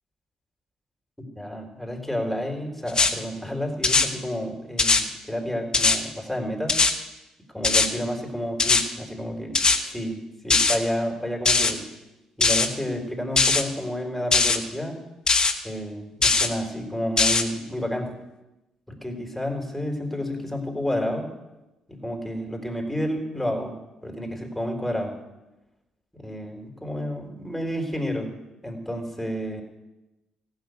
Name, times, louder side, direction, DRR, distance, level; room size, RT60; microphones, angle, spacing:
voice 1, 1.2-6.8 7.5-11.8 12.4-15.0 15.6-18.1 18.9-21.3 21.9-25.2 26.1-28.4 28.6-29.6, equal, 5° left, 2 dB, 3.7 m, -30 dB
sound 1, 2.9-3.1 3.8-4.1 4.8-5.0 5.7-6.0 6.7-6.9 7.6-7.9 8.6-8.8 9.5-9.8 10.5-10.8 11.5-11.7 12.4-12.7 13.4-13.6 14.3-14.6 15.3-15.5 16.2-16.5 17.2-17.4, left 4 dB, 35° left, 1.5 m, -19 dB
15.5 x 6.4 x 9.4 m, 1.0 s
hypercardioid pair, 45°, 2 cm